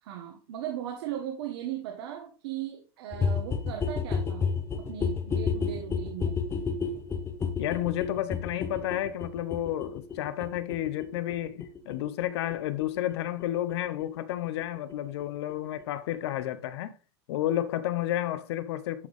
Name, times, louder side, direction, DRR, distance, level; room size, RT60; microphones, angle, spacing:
voice 1, 0.0-4.4 4.9-6.4, right 10 dB, 70° right, 1.6 m, -37 dB
sound 1, 3.1-14.6 14.9-15.0 15.2-15.3 15.5-15.6 15.8-15.9 16.1-16.2 16.4-16.5, left 5 dB, 15° left, 0.8 m, -32 dB
voice 2, 7.6-16.9 17.3-19.1, left 13 dB, 70° left, 0.9 m, -31 dB
11.0 x 3.9 x 3.5 m
supercardioid pair, 140°, 14 cm